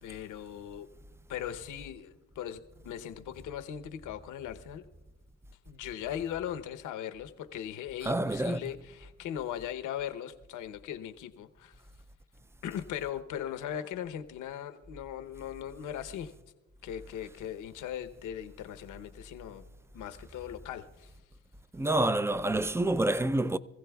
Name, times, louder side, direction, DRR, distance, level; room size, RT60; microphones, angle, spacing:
voice 1, 0.0-0.9 1.3-4.8 5.7-11.7 12.6-16.3 16.8-19.6 19.9-21.1, left 10 dB, 85° left, 0.9 m, -39 dB
voice 2, 8.0-8.8 21.7-23.6, right 1 dB, 10° right, 0.4 m, -28 dB
25.5 x 15.5 x 2.3 m
cardioid pair, 90°, 30 cm